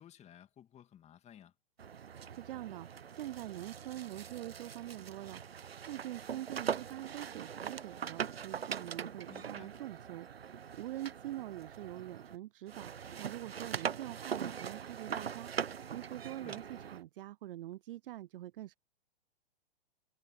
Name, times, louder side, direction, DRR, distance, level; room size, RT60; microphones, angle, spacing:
voice 1, 0.0-1.5 9.3-9.7 16.4-16.6, left 10 dB, 20° left, 2.7 m, -56 dB
sound 1, 1.8-12.4 12.7-17.0, right 7 dB, 90° right, 1.0 m, -42 dB
voice 2, 2.1-18.8, right 14 dB, 65° right, 0.5 m, -45 dB
hypercardioid pair, 115°, 29 cm